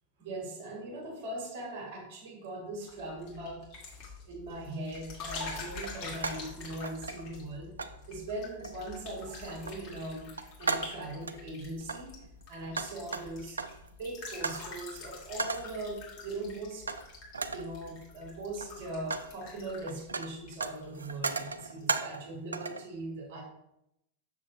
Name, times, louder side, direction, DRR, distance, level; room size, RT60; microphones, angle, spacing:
voice 1, 0.2-3.7 4.3-7.7 8.1-10.3 10.6-12.2 12.5-13.6 14.0-16.9 17.5-23.4, right 2 dB, 50° right, -1 dB, 1.8 m, -40 dB
sound 1, 2.8-21.2 21.5-21.9, left 4 dB, 40° left, 2.2 m, -46 dB
sound 2, 4.5-4.7 5.8-6.5 6.8-7.5 7.8-8.0 8.6-8.9 9.3-9.8 10.2-11.4 11.8-13.9 14.4-14.7 15.4-15.8 16.9-17.1 17.3-17.7 18.4-19.3 19.6-22.3 22.5-22.9, right 4 dB, 75° right, 0.4 m, -36 dB
7.2 x 6.5 x 2.4 m, 0.81 s
figure-of-eight pair, 90°, 0 cm